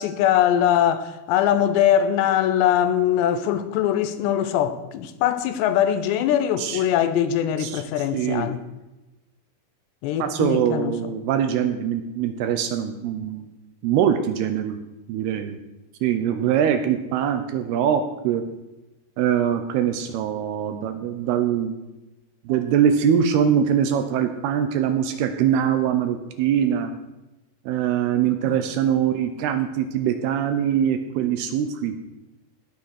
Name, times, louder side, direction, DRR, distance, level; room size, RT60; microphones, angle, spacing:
voice 1, 0.0-8.6 10.0-10.9 28.1-28.5, left 10 dB, 80° left, 2.9 m, -22 dB
voice 2, 8.1-8.5 10.2-13.5 13.8-14.8 15.1-15.6 16.0-18.4 19.2-21.7 22.5-26.9 27.7-31.9, right 9 dB, 75° right, 2.5 m, -23 dB
17.5 x 6.1 x 6.5 m
omnidirectional pair, 5.1 m